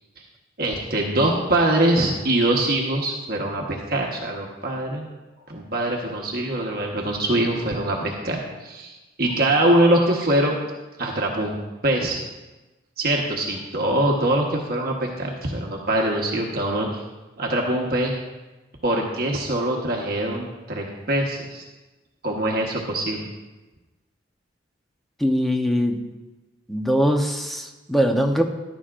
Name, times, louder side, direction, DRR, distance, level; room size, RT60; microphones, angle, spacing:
voice 1, 0.6-5.1 5.5-10.6 11.0-11.6 11.8-12.2 13.0-17.0 17.4-18.2 18.8-21.6 22.2-23.3, right 1 dB, 50° right, -1 dB, 1.2 m, -23 dB
voice 2, 25.2-26.0 26.7-28.4, equal, ahead, 2 dB, 0.9 m, -21 dB
14.5 x 11.5 x 2.5 m, 1.1 s
head